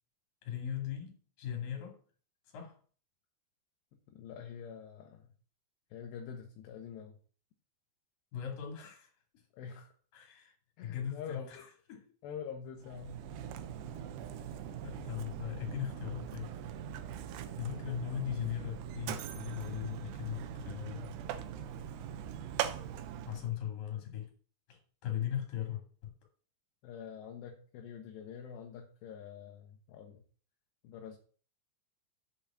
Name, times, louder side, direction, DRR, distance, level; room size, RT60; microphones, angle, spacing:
voice 1, 0.4-2.0 2.5-2.8 8.3-9.1 10.1-10.5 10.8-12.0 15.0-16.5 17.6-21.1 23.3-24.3 24.7-26.1, left 10 dB, 55° left, 3.9 m, -39 dB
voice 2, 4.1-5.3 5.9-7.2 9.5-9.9 10.8-11.7 12.2-13.2 26.8-30.2 30.8-31.2, left 7 dB, 75° left, 3.1 m, -46 dB
Mechanisms, 12.8-23.5, right 9 dB, 80° right, 2.8 m, -41 dB
8.0 x 5.2 x 7.3 m
omnidirectional pair, 5.0 m